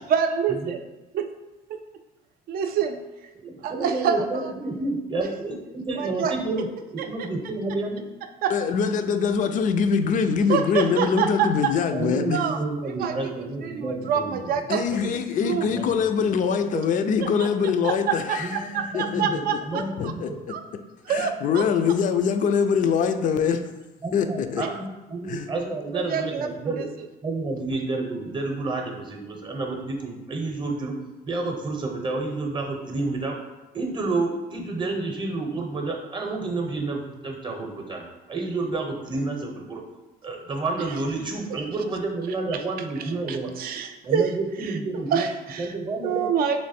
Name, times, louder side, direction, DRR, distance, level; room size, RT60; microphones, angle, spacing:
voice 1, 0.1-0.8 1.1-1.3 1.7-1.8 2.5-3.0 3.6-4.5 5.9-6.3 7.0-7.3 8.4-8.5 10.5-11.7 12.3-12.6 13.0-13.1 13.6-15.1 15.4-15.7 16.7-16.8 17.2-17.5 17.8-20.1 20.5-20.6 21.1-21.6 24.6-24.7 25.9-26.8 43.0-44.3 45.1-45.8 46.0-46.6, right 7 dB, 60° right, 7 dB, 0.5 m, -26 dB
voice 2, 3.3-6.7 6.9-8.0 11.9-14.6 15.7-16.3 18.4-20.4 24.0-26.9 27.2-30.9 31.2-33.4 33.7-39.8 40.2-43.5 44.0-45.3 45.6-46.3, right 3 dB, 30° right, 2 dB, 0.7 m, -30 dB
voice 3, 8.5-12.4 14.7-20.6 21.1-23.7 24.1-24.8 25.3-25.5, left 6 dB, 50° left, 8 dB, 0.4 m, -24 dB
3.2 x 3.0 x 4.2 m, 1.1 s
cardioid pair, 110°, 17 cm